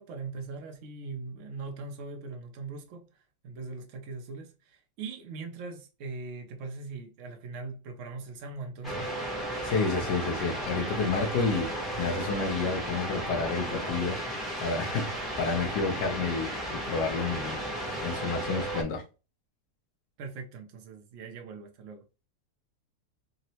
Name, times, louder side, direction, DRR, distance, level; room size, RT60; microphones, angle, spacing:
voice 1, 0.0-3.1 3.4-9.1 20.2-22.0, right 4 dB, 90° right, 0.6 m, -40 dB
sound 1, 8.8-18.8, right 1 dB, ahead, 0.5 m, -34 dB
voice 2, 9.6-14.2 14.6-17.6 18.0-19.0, left 4 dB, 80° left, 1.3 m, -30 dB
3.6 x 2.0 x 2.7 m
omnidirectional pair, 1.9 m